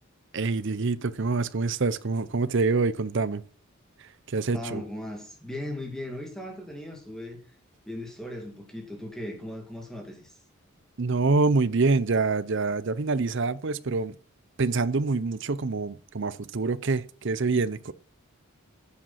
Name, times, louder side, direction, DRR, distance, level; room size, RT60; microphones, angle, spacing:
voice 1, 0.3-3.4 4.0-4.8 11.0-14.1 14.6-17.9, right 3 dB, 55° right, 0.6 m, -26 dB
voice 2, 4.5-7.4 7.9-10.3, left 1 dB, 5° left, 2.3 m, -37 dB
10.0 x 7.7 x 5.7 m
head